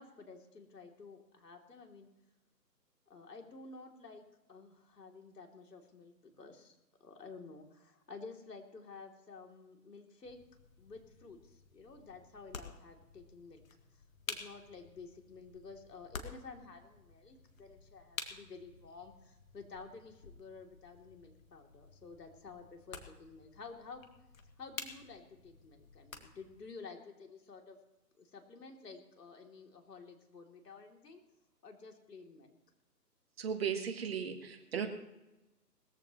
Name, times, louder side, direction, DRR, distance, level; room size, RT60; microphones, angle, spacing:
voice 1, 0.0-2.1 3.1-4.2 4.5-10.4 10.8-13.6 13.9-14.0 14.3-24.1 24.6-27.8 28.2-31.2 31.6-32.6, left 4 dB, 70° left, 2 dB, 3.1 m, -52 dB
sound 1, 10.2-26.6, left 5 dB, 55° left, 1.9 m, -51 dB
voice 2, 33.4-34.9, right 7 dB, 35° right, 6 dB, 1.5 m, -36 dB
20.0 x 14.5 x 3.1 m, 1.0 s
hypercardioid pair, 155°, 50 cm